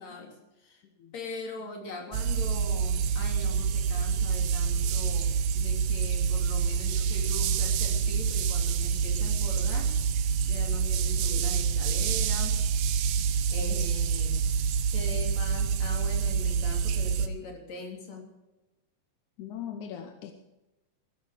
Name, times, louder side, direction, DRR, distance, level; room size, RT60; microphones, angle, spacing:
voice 1, 0.0-0.8 1.1-12.6 13.5-14.4 14.9-18.2, left 3 dB, 45° left, 1 dB, 4.0 m, -41 dB
voice 2, 0.8-1.1 4.1-4.2 4.8-5.2 6.7-6.8 13.2-13.3 19.4-20.3, left 9 dB, 70° left, 6 dB, 2.0 m, -42 dB
sound 1, 2.1-17.3, right 6 dB, 75° right, 2.6 m, -27 dB
16.0 x 13.5 x 5.0 m, 1.0 s
omnidirectional pair, 4.4 m